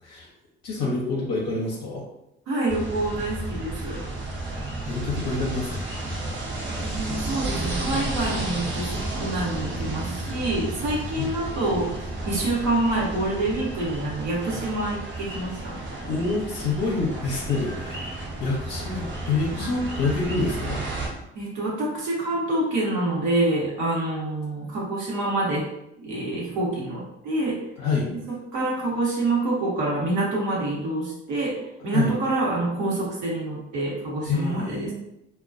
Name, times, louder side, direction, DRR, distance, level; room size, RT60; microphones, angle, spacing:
voice 1, 0.6-2.0 4.8-5.8 11.2-11.3 16.0-20.8 27.8-28.1 31.9-32.1 34.2-34.9, left 3 dB, 55° left, -3 dB, 0.7 m, -27 dB
voice 2, 2.5-4.0 6.7-15.8 19.6-19.8 21.3-25.7 26.0-27.7 28.1-34.9, right 2 dB, 65° right, -4 dB, 1.0 m, -27 dB
sound 1, 2.7-21.1, right 2 dB, 35° right, 0.8 m, -32 dB
2.2 x 2.2 x 2.5 m, 0.81 s
hypercardioid pair, 60°, 31 cm